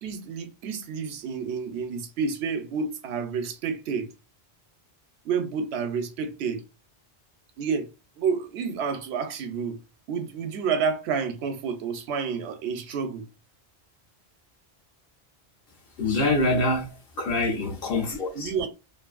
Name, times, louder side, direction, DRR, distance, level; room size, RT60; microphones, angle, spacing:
voice 1, 0.0-4.1 5.2-6.6 7.6-7.9 8.2-9.8 10.1-13.2 18.3-18.7, right 6 dB, 85° right, 0.8 m, -29 dB
voice 2, 16.0-18.5, left 2 dB, 65° left, 0.9 m, -25 dB
2.6 x 2.5 x 2.3 m
omnidirectional pair, 1.1 m